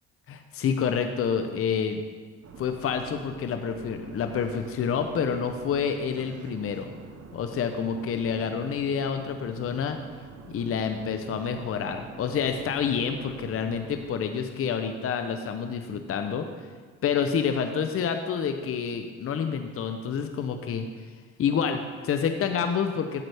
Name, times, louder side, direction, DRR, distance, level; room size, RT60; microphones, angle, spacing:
voice 1, 0.3-2.0 2.6-6.9 7.3-10.0 10.5-16.5 17.0-20.9 21.4-23.2, left 7 dB, 50° left, 7 dB, 0.6 m, -28 dB
sound 1, 2.4-14.2, right 4 dB, 55° right, 0.9 m, -46 dB
8.5 x 7.9 x 3.3 m, 1.5 s
cardioid pair, 90°, 30 cm